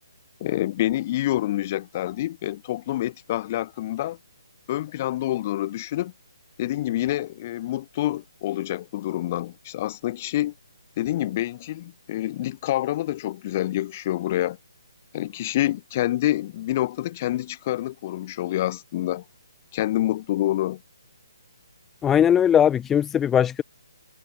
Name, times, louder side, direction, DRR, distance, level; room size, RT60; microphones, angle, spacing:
voice 1, 0.4-4.2 4.7-6.1 6.6-10.5 11.0-14.6 15.1-19.2 19.7-20.8, left 14 dB, 25° left, 4.5 m, -27 dB
voice 2, 22.0-23.6, left 9 dB, 10° left, 0.5 m, -19 dB
hypercardioid pair, 165°, 2 cm